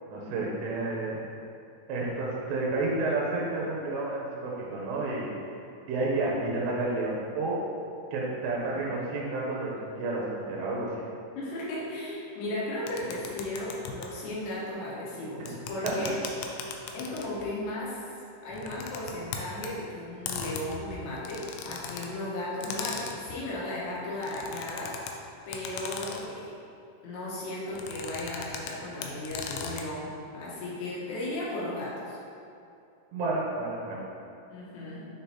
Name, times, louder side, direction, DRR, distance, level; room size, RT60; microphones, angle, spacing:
voice 1, 0.1-1.2 1.9-5.3 5.9-7.6 8.1-11.0 15.5-15.6 15.8-16.1 33.1-34.0, right 2 dB, 80° right, -4 dB, 2.7 m, -30 dB
voice 2, 11.4-16.2 16.9-18.1 18.4-25.0 25.5-26.5 27.0-32.2 34.5-35.1, left 1 dB, 75° left, -6 dB, 3.3 m, -35 dB
sound 1, 12.9-14.1 15.5-17.5 18.5-19.7 20.3-22.1 22.6-23.4 24.2-25.1 25.5-26.3 27.7-28.7 29.0-29.8, left 6 dB, 90° left, 2.4 m, -38 dB
9.4 x 3.8 x 2.8 m, 2.6 s
omnidirectional pair, 5.5 m